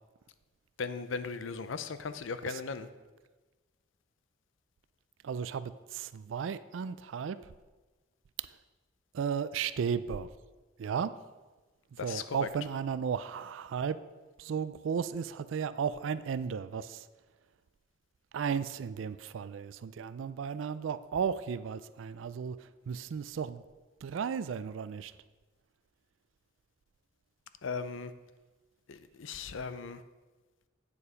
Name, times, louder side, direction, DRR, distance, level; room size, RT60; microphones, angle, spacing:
voice 1, 0.8-2.9 12.0-12.5 27.6-28.1 28.9-30.0, left 5 dB, 90° left, 12 dB, 0.6 m, -37 dB
voice 2, 5.2-7.4 9.1-10.3 10.8-11.2 12.0-14.0 14.4-17.0 18.3-22.6 22.9-23.6 24.0-25.1, right 6 dB, 85° right, 14 dB, 0.4 m, -34 dB
8.7 x 6.9 x 5.0 m, 1.2 s
head